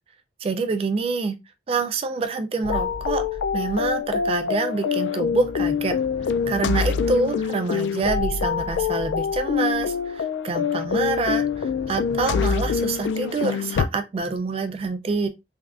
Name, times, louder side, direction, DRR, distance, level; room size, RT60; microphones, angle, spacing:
voice 1, 0.4-1.4 1.7-3.2 3.5-5.9 6.5-15.3, right 4 dB, 35° right, 0.3 m, -26 dB
sound 1, 2.6-13.9, left 6 dB, 85° left, 0.3 m, -25 dB
3.3 x 2.4 x 2.4 m
head